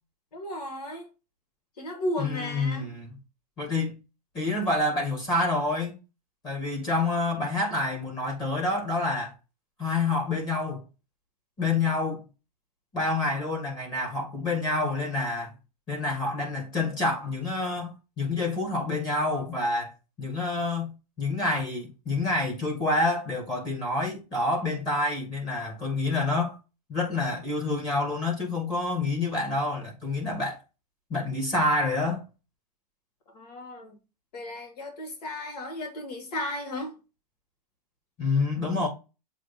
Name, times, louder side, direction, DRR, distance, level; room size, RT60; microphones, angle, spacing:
voice 1, 0.3-1.1 1.8-2.9 33.3-33.9 34.3-36.9, left 1 dB, 70° left, 2.8 m, -34 dB
voice 2, 2.2-3.2 3.6-3.9 4.3-5.9 6.4-9.3 9.8-10.8 11.6-12.2 12.9-15.5 15.9-19.9 20.2-26.6 26.9-30.6 31.1-32.2 38.2-38.9, left 2 dB, 20° left, 2.0 m, -28 dB
7.5 x 3.3 x 5.9 m
supercardioid pair, 170°, 21 cm